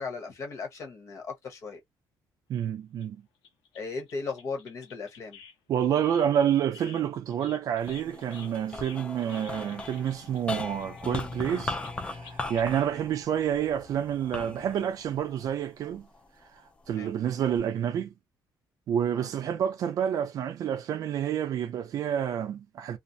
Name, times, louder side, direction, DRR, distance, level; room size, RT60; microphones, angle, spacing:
voice 1, 0.0-1.8 3.7-5.4 16.9-17.1 19.1-19.3, left 4 dB, 40° left, 0.9 m, -37 dB
voice 2, 2.5-3.2 5.7-11.8 12.0-16.1 16.9-18.1 18.9-23.0, right 9 dB, 50° right, 0.4 m, -28 dB
sound 1, 3.0-3.2 3.4-5.6 5.8-12.9 13.6-13.7 13.9-14.0, left 6 dB, 90° left, 0.9 m, -51 dB
sound 2, 7.8-16.3 16.8-17.6, left 2 dB, 15° left, 0.4 m, -39 dB
2.4 x 2.0 x 2.6 m
cardioid pair, 180°, 8 cm